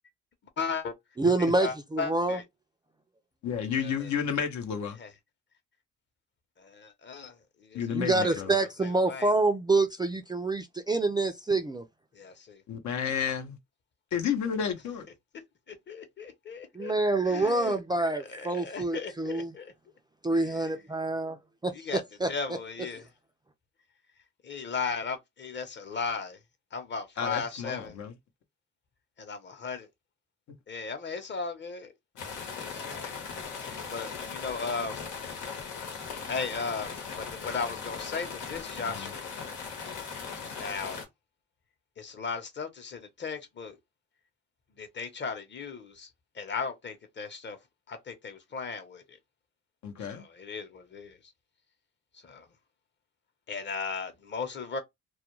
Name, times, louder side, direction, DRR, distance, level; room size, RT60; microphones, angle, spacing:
voice 1, 0.6-0.9 1.6-2.4 3.8-4.1 5.0-5.1 6.6-9.3 12.1-12.6 15.7-16.9 17.3-17.8 18.1-19.7 20.3-20.7 21.7-22.0 22.3-23.0 24.4-26.4 26.7-28.0 29.2-29.9 30.7-31.9 32.5-33.2 33.5-35.0 36.3-39.2 40.5-41.0 42.0-43.8 44.8-46.1 46.3-47.6 47.9-49.2 50.1-51.2 52.1-52.5 53.5-54.8, left 5 dB, 35° left, 0.8 m, -36 dB
voice 2, 1.2-2.4 7.9-11.8 16.8-19.5 20.2-21.4 21.6-22.3, right 2 dB, 15° right, 0.3 m, -27 dB
voice 3, 3.4-5.0 7.7-8.5 12.7-13.6 14.1-15.1 27.2-28.1 38.8-39.1 49.8-50.2, left 7 dB, 70° left, 0.8 m, -31 dB
sound 1, 32.2-41.0, left 5 dB, 90° left, 1.1 m, -39 dB
2.3 x 2.2 x 3.0 m
cardioid pair, 90°, 30 cm